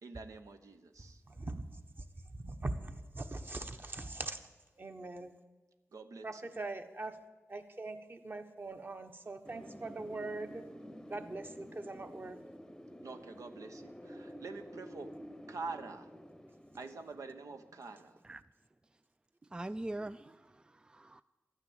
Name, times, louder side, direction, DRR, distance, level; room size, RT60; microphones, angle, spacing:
voice 1, 0.0-1.2 5.9-6.5 13.0-15.1 15.5-16.1 16.8-18.1, right 4 dB, 80° right, 1.0 m, -46 dB
voice 2, 2.3-4.4 4.8-5.3 6.2-7.1 7.5-10.7 11.1-12.4, right 2 dB, 40° right, 1.4 m, -41 dB
Wind, 9.5-18.2, equal, 10° left, 0.8 m, -50 dB
voice 3, 19.5-21.2, right 1 dB, 15° right, 0.3 m, -42 dB
12.0 x 9.6 x 8.7 m
cardioid pair, 55°, 5 cm